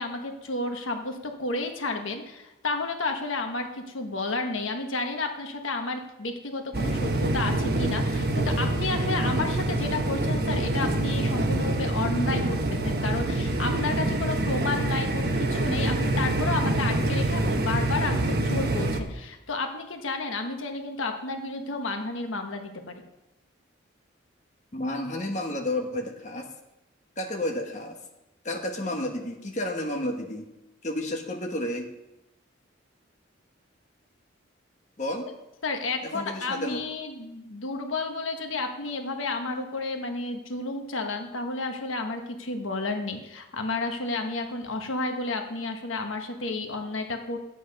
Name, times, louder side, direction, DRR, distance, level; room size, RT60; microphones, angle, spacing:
voice 1, 0.0-23.0 35.6-47.4, left 3 dB, 80° left, 5 dB, 1.3 m, -31 dB
sound 1, 6.7-19.0, right 2 dB, 50° right, 1.1 m, -26 dB
voice 2, 24.7-26.5 27.2-28.0 28.4-30.5 30.8-31.9 35.0-35.3 36.0-36.8, left 1 dB, 35° left, 2 dB, 1.2 m, -31 dB
12.5 x 8.6 x 5.3 m, 0.95 s
head